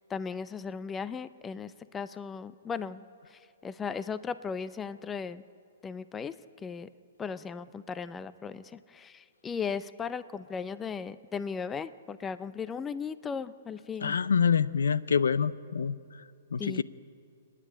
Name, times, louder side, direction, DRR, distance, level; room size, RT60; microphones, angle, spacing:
voice 1, 0.1-3.1 3.3-5.4 5.8-6.3 6.6-6.9 7.2-14.2 16.6-16.8, left 6 dB, 15° left, 15 dB, 0.5 m, -37 dB
voice 2, 14.0-15.9 16.5-16.8, left 6 dB, 85° left, 17 dB, 0.6 m, -26 dB
29.5 x 9.9 x 10.0 m, 2.6 s
hypercardioid pair, 145°, 0 cm